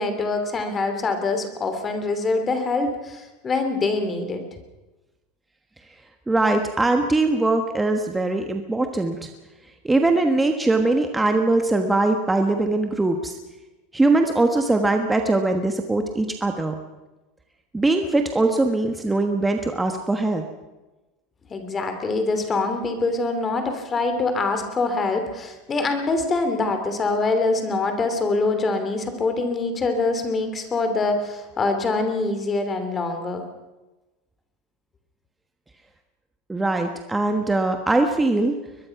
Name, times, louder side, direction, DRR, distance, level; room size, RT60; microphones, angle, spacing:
voice 1, 0.0-4.4 21.5-33.4, left 3 dB, 20° left, 7 dB, 3.0 m, -24 dB
voice 2, 6.3-9.3 9.8-13.4 13.9-16.7 17.7-20.4 36.5-38.5, right 2 dB, 5° right, 5 dB, 1.3 m, -21 dB
22.0 x 22.0 x 5.9 m, 1.1 s
supercardioid pair, 160°, 0 cm